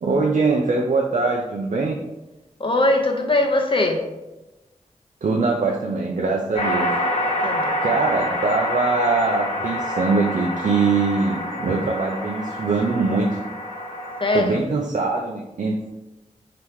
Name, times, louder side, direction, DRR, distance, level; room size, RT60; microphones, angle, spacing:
voice 1, 0.0-2.0 5.2-7.0 7.8-13.4 14.3-15.9, right 3 dB, 70° right, -1 dB, 0.5 m, -22 dB
voice 2, 2.6-4.0 7.4-7.8 14.2-14.6, left 2 dB, 40° left, 2 dB, 0.8 m, -21 dB
sound 1, 6.5-14.4, left 1 dB, 60° left, 1.2 m, -27 dB
4.5 x 2.9 x 3.4 m, 1.0 s
cardioid pair, 45°, 13 cm